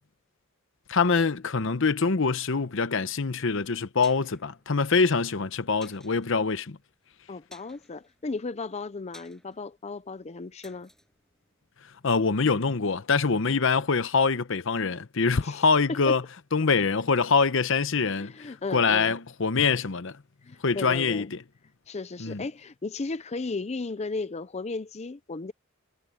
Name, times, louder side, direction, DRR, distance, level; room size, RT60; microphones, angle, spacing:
voice 1, 0.9-6.8 12.0-16.2 16.5-20.2 20.6-21.4 22.2-22.4, left 4 dB, 70° left, 0.9 m, -24 dB
sound 1, 4.0-12.5 12.8-12.9, left 1 dB, 5° left, 6.6 m, -57 dB
voice 2, 7.3-10.9 15.4-15.6 15.9-16.2 18.1-19.2 20.4-21.3 21.9-25.5, left 3 dB, 35° left, 0.6 m, -35 dB
head